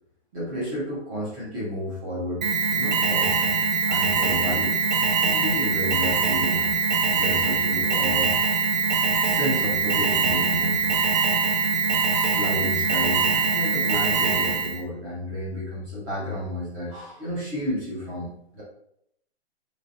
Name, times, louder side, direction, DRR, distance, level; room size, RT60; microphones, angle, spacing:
voice 1, 0.3-3.5 3.9-4.8 5.2-6.7 7.1-8.3 9.2-11.0 12.3-18.6, equal, 15° right, -7 dB, 0.7 m, -31 dB
Alarm, 2.4-14.8, right 5 dB, 45° right, 0.4 m, -23 dB
3.2 x 2.8 x 2.5 m, 0.74 s
hypercardioid pair, 160°, 33 cm